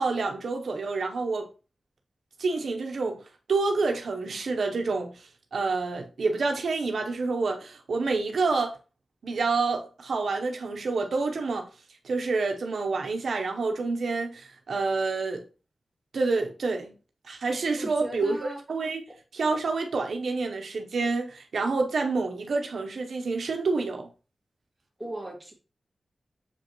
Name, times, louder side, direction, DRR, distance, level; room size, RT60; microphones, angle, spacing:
voice 1, 0.0-1.5 2.4-3.2 3.5-8.8 9.2-11.7 12.0-15.4 16.1-16.9 17.2-19.0 19.3-24.1, right 3 dB, 80° right, 0.9 m, -28 dB
voice 2, 17.8-18.6 19.1-19.2 25.0-25.5, right 1 dB, 15° right, 2.2 m, -37 dB
6.8 x 5.1 x 3.0 m
wide cardioid pair, 110°, 0 cm